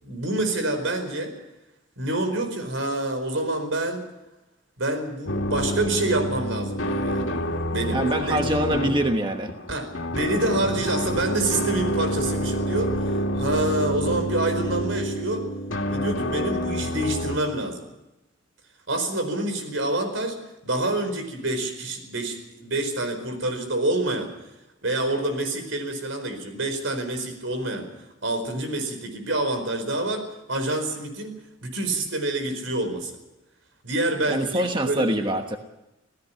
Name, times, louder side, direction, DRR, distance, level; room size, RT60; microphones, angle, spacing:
voice 1, 0.0-1.3 2.0-4.0 4.8-7.3 7.7-8.7 9.7-15.5 15.9-17.9 18.9-20.4 20.6-24.3 24.8-27.9 28.2-33.2 33.8-35.3, right 2 dB, 80° right, 7 dB, 4.7 m, -27 dB
sound 1, 5.3-17.4, equal, 80° left, 2.4 m, -28 dB
voice 2, 7.9-9.5 34.3-35.6, right 1 dB, 25° right, 5 dB, 1.2 m, -24 dB
27.0 x 17.0 x 5.8 m, 0.98 s
head